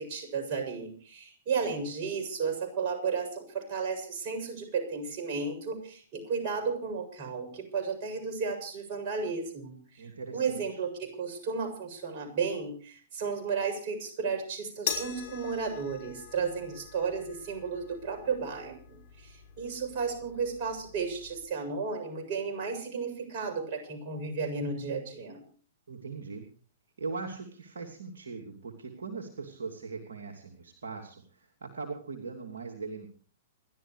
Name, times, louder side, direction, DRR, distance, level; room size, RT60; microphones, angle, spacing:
voice 1, 0.0-10.0 10.3-25.4, right 5 dB, 45° right, 3 dB, 7.4 m, -33 dB
voice 2, 10.0-10.8 25.9-26.5 27.0-33.1, right 4 dB, 70° right, 1 dB, 2.9 m, -40 dB
sound 1, 14.9-21.4, left 7 dB, 60° left, 5.6 m, -42 dB
28.5 x 12.5 x 3.2 m, 0.42 s
figure-of-eight pair, 110°, 0 cm